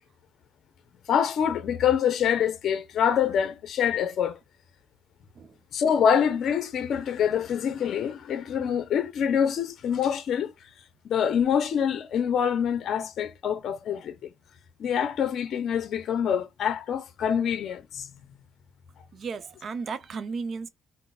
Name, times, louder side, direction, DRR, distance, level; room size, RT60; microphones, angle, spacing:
voice 1, 1.1-4.4 5.7-10.5 11.0-14.1 14.8-18.1, left 8 dB, 70° left, 0.5 m, -25 dB
voice 2, 19.1-20.7, right 5 dB, 55° right, 0.5 m, -34 dB
3.8 x 2.0 x 2.3 m
cardioid pair, 90°, 0 cm